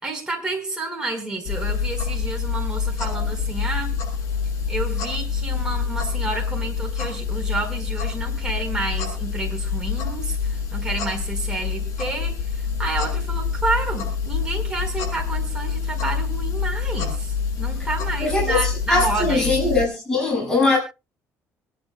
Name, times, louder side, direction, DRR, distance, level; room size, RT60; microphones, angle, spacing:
voice 1, 0.0-3.9 4.7-19.6, right 2 dB, 10° right, 4.7 m, -30 dB
sound 1, 1.5-19.9, left 6 dB, 75° left, 7.5 m, -26 dB
voice 2, 18.2-20.8, left 3 dB, 10° left, 7.2 m, -21 dB
25.0 x 10.5 x 2.2 m
cardioid pair, 135°, 6 cm